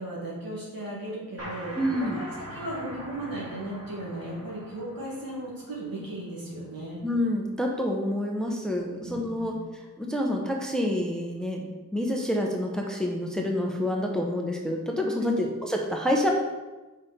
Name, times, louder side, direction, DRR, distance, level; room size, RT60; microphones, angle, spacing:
voice 1, 0.0-7.0 9.0-9.5, right 1 dB, 85° right, -5 dB, 2.2 m, -36 dB
sound 1, 1.4-6.8, equal, 45° right, 2.2 m, -43 dB
voice 2, 1.7-2.2 7.0-9.6 10.0-11.6 11.9-16.3, left 1 dB, ahead, 0 dB, 0.8 m, -27 dB
5.4 x 5.4 x 4.2 m, 1.2 s
wide cardioid pair, 95°, 34 cm